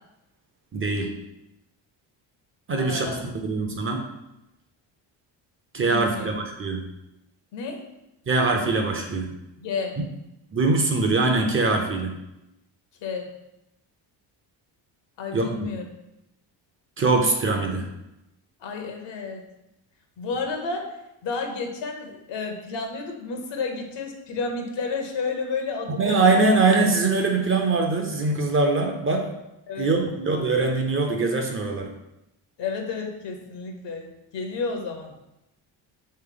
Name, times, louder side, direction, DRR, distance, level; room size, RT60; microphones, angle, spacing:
voice 1, 0.7-1.1 2.7-3.1 3.4-4.1 5.7-6.8 8.3-9.3 10.5-12.1 15.3-15.7 17.0-17.9 26.0-29.3 29.8-31.9, right 3 dB, 30° right, 3 dB, 0.6 m, -22 dB
voice 2, 2.8-3.2 5.9-6.3 7.5-7.8 9.6-10.0 13.0-13.3 15.2-15.9 18.6-19.4 20.2-20.9 21.2-26.2 29.7-29.9 32.6-35.1, left 4 dB, 65° left, 4 dB, 0.9 m, -31 dB
3.3 x 3.1 x 3.8 m, 0.90 s
cardioid pair, 95°, 46 cm